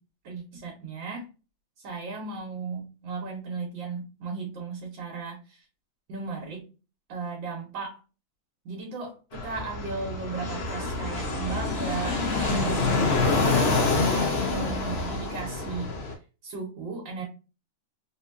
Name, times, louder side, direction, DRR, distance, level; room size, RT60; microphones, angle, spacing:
voice 1, 0.2-1.3 1.8-5.6 6.1-6.7 7.1-8.0 8.7-12.9 14.1-15.9 16.4-17.2, right 4 dB, 80° right, 1.8 m, -35 dB
Fixed-wing aircraft airplane, 9.3-16.1, left 3 dB, 45° left, 0.8 m, -26 dB
4.0 x 2.7 x 2.5 m
omnidirectional pair, 2.0 m